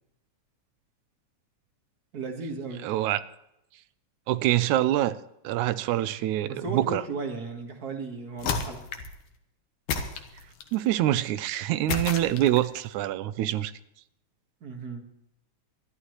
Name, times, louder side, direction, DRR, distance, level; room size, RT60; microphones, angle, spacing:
voice 1, 2.1-2.9 6.4-8.9 14.6-15.1, right 3 dB, 40° right, 4 dB, 1.7 m, -35 dB
voice 2, 2.8-3.2 4.3-5.2 5.4-7.0 10.7-13.7, right 13 dB, 90° right, 14 dB, 2.1 m, -25 dB
sound 1, 8.4-9.2 9.9-10.8 11.9-12.8, left 5 dB, 85° left, 2.7 m, -32 dB
25.0 x 11.5 x 3.2 m, 0.83 s
omnidirectional pair, 3.3 m